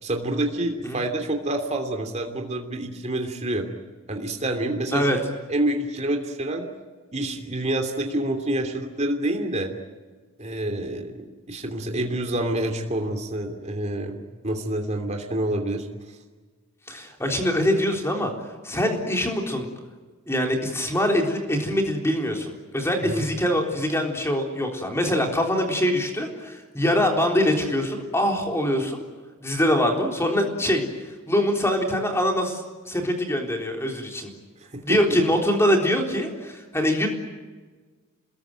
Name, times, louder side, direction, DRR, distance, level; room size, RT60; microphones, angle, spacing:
voice 1, 0.0-3.7 4.1-5.1 5.5-6.6 7.1-9.7 10.4-11.2 11.5-16.2 23.0-23.3 34.7-35.2, right 1 dB, 30° right, 4 dB, 2.9 m, -27 dB
voice 2, 16.9-19.7 20.3-29.0 29.4-30.8 31.3-34.3 34.8-37.1, equal, 10° left, 2 dB, 3.8 m, -24 dB
27.5 x 21.0 x 9.1 m, 1.4 s
head